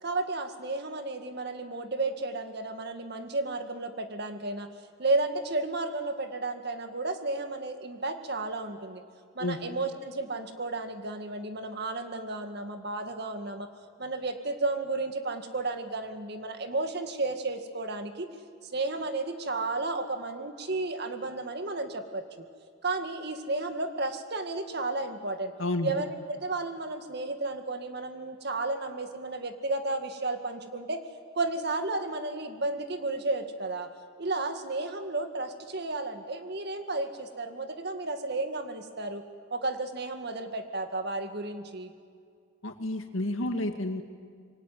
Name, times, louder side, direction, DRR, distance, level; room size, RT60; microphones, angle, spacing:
voice 1, 0.0-4.7 5.0-9.0 9.4-13.7 14.0-18.3 18.7-22.2 22.8-25.5 25.8-31.0 31.3-33.9 34.2-39.2 39.5-41.9, right 2 dB, 55° right, 7 dB, 2.1 m, -32 dB
voice 2, 25.6-25.9 42.6-44.0, left 1 dB, 85° left, 6 dB, 2.2 m, -30 dB
26.0 x 23.0 x 9.3 m, 2.1 s
head